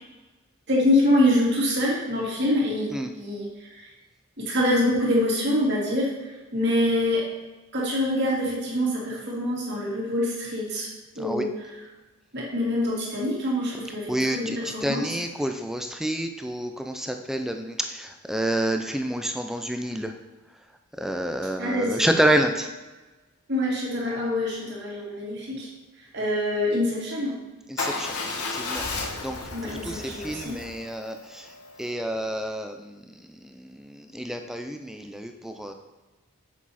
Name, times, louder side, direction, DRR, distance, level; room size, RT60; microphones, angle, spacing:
voice 1, 0.7-2.9 3.2-3.5 3.8-3.9 4.4-6.1 6.5-7.3 7.7-10.9 11.2-11.8 12.3-15.2 21.6-22.1 23.5-25.7 26.1-27.3 29.5-30.6, left 1 dB, 50° right, -5 dB, 2.4 m, -25 dB
voice 2, 14.1-20.1 21.0-22.7 27.7-28.2 28.6-28.8 29.2-29.4 29.8-31.4 31.8-32.8 34.1-35.7, right 1 dB, ahead, 5 dB, 0.4 m, -28 dB
Motorcycle / Engine starting / Idling, 27.8-31.9, left 3 dB, 90° left, 1.1 m, -33 dB
7.4 x 6.0 x 4.2 m, 1.2 s
head